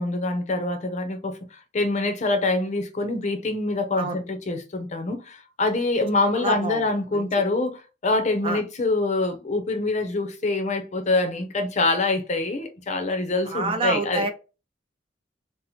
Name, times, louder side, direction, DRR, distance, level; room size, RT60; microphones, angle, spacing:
voice 1, 0.0-14.3, left 2 dB, 40° left, 0.6 m, -25 dB
voice 2, 6.4-6.8 7.1-7.2 8.4-8.6 13.4-14.3, right 3 dB, 30° right, 0.5 m, -27 dB
2.8 x 2.0 x 4.0 m
head